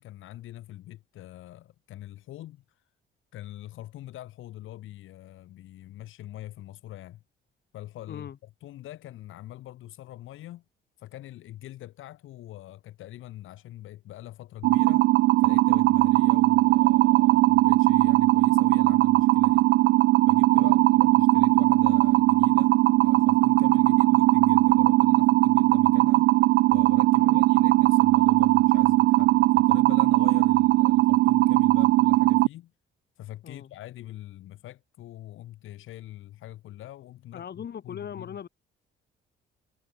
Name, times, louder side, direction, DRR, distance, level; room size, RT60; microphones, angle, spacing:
voice 1, 0.0-2.6 3.3-7.2 7.7-8.3 8.6-10.6 11.0-15.1 15.4-19.7 20.3-26.3 26.7-32.7 33.2-38.4, left 14 dB, 85° left, 3.5 m, -43 dB
voice 2, 8.1-8.4 20.5-20.9 27.1-27.4 33.4-33.7 37.3-38.5, left 8 dB, 55° left, 6.7 m, -40 dB
sound 1, 14.6-32.5, right 18 dB, 85° right, 0.4 m, -20 dB
cardioid pair, 90°, 20 cm